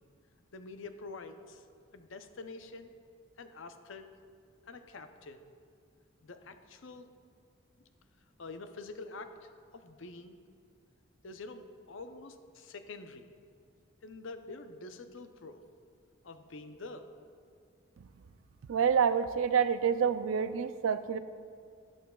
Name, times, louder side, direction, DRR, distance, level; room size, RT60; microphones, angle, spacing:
voice 1, 0.5-1.7 1.9-2.9 3.4-4.1 4.7-5.5 6.2-7.1 8.4-10.4 11.2-13.3 14.0-15.6 16.2-17.1, left 3 dB, 70° left, 8 dB, 0.6 m, -46 dB
voice 2, 18.7-21.2, right 7 dB, 85° right, 12 dB, 0.4 m, -27 dB
12.5 x 11.5 x 2.3 m, 2.2 s
head